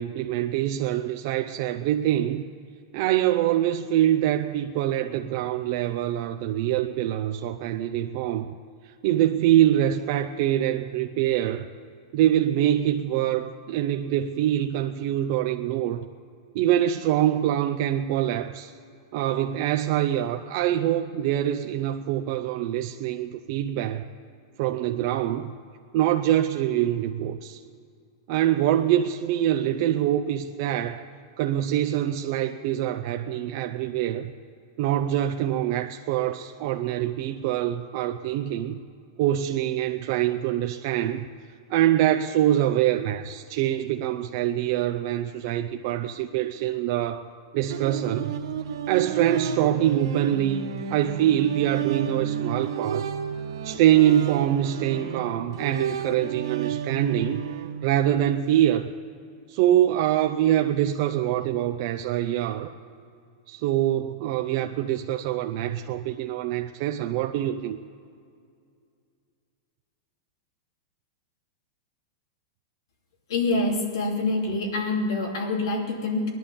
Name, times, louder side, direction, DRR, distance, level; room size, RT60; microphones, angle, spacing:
voice 1, 0.0-2.4 2.9-8.5 9.0-11.7 12.1-16.1 16.5-18.7 19.1-24.0 24.6-25.5 25.9-27.6 28.3-31.0 31.4-34.3 34.8-38.8 39.2-41.2 41.7-47.3 47.5-48.3 48.9-53.0 53.6-57.4 57.8-58.9 59.5-62.7 63.5-67.8, right 12 dB, 40° right, 5 dB, 0.6 m, -24 dB
sound 1, 47.7-58.3, right 7 dB, 80° right, 1.6 m, -31 dB
voice 2, 73.3-76.3, left 2 dB, 75° left, 1 dB, 2.9 m, -26 dB
19.0 x 11.0 x 7.0 m, 2.3 s
supercardioid pair, 170°, 2 cm